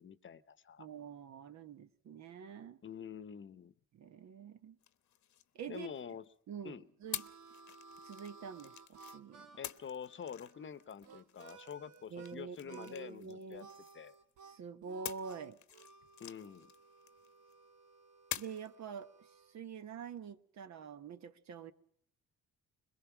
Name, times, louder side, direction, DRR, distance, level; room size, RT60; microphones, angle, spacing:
voice 1, 0.0-0.9 2.8-3.7 5.7-6.2 6.6-6.8 9.6-13.7 13.9-14.2 16.2-16.7, left 7 dB, 40° left, 0.9 m, -47 dB
voice 2, 0.8-2.8 3.9-4.8 5.5-5.9 6.5-6.8 7.0-7.3 8.0-9.5 12.1-13.7 14.5-15.6 18.4-21.7, right 6 dB, 65° right, 1.1 m, -46 dB
sound 1, 4.8-6.3 7.1-9.2 9.6-14.3 15.0-17.5 18.3-18.7, left 11 dB, 70° left, 0.9 m, -48 dB
Harmonica, 6.6-12.4 12.7-13.2 13.5-19.6, right 4 dB, 90° right, 1.1 m, -58 dB
22.0 x 21.5 x 6.0 m
cardioid pair, 90°, 30 cm